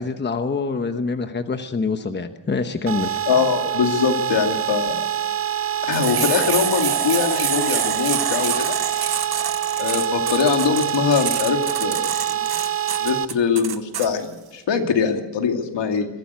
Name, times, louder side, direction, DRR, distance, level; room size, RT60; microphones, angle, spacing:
voice 1, 0.0-3.2, left 4 dB, 25° left, 8 dB, 1.1 m, -25 dB
sound 1, 2.9-13.3, right 10 dB, 35° right, 0.7 m, -25 dB
voice 2, 3.3-5.0 5.9-8.8 9.8-12.4 13.0-16.1, left 6 dB, 75° left, 4 dB, 2.6 m, -22 dB
sound 2, 5.9-14.1, right 8 dB, 60° right, 1.4 m, -27 dB
22.5 x 15.0 x 8.2 m, 1.2 s
wide cardioid pair, 155°, 43 cm